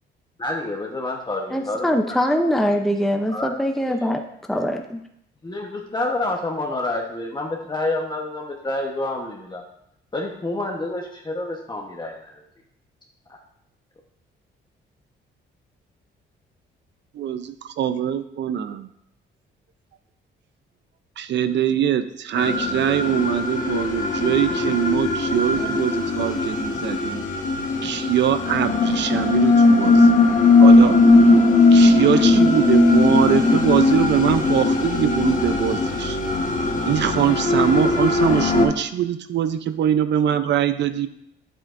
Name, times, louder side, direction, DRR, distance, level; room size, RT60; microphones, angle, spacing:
voice 1, 0.4-2.3 3.3-3.6 3.9-4.1 5.4-9.6 10.1-12.4, left 2 dB, 20° left, 0 dB, 1.1 m, -28 dB
voice 2, 1.5-4.2 4.5-5.0, equal, ahead, 3 dB, 0.7 m, -22 dB
voice 3, 17.2-18.9 21.2-27.3 27.8-30.1 30.6-31.0 31.7-36.2 36.9-41.1, right 9 dB, 65° right, 11 dB, 0.6 m, -22 dB
sound 1, 22.4-38.7, left 3 dB, 40° left, 1.4 m, -18 dB
9.2 x 7.9 x 2.6 m, 0.77 s
cardioid pair, 90°, 20 cm